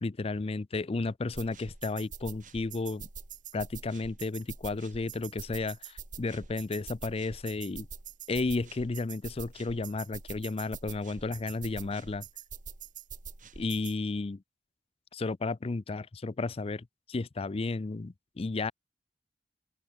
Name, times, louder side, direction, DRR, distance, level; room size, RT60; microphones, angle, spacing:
voice 1, 0.0-3.1 3.5-7.9 8.3-12.3 13.6-14.4 15.1-18.7, left 3 dB, 35° left, 0.5 m, -33 dB
sound 1, 1.3-13.9, right 6 dB, 45° right, 2.0 m, -45 dB
head